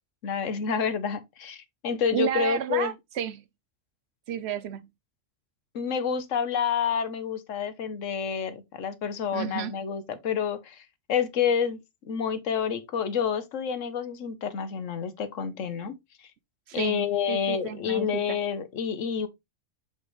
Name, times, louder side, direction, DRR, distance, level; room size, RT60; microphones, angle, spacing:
voice 1, 0.2-2.9 5.7-11.8 12.0-15.9 16.7-19.3, left 7 dB, 90° left, 1.3 m, -28 dB
voice 2, 2.1-3.4 4.3-4.9 9.3-9.7 16.7-18.4, right 10 dB, 65° right, 0.8 m, -32 dB
5.9 x 5.5 x 3.2 m
omnidirectional pair, 1.3 m